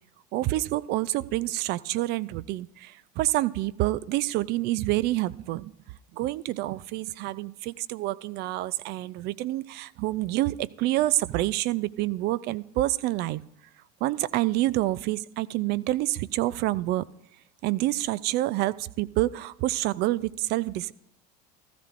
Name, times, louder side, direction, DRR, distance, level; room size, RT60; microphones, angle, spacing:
voice 1, 0.3-5.7 6.1-13.4 14.0-17.1 17.6-20.9, right 16 dB, 55° right, 19 dB, 0.5 m, -27 dB
15.5 x 13.5 x 2.5 m, 0.83 s
supercardioid pair, 95°, 20 cm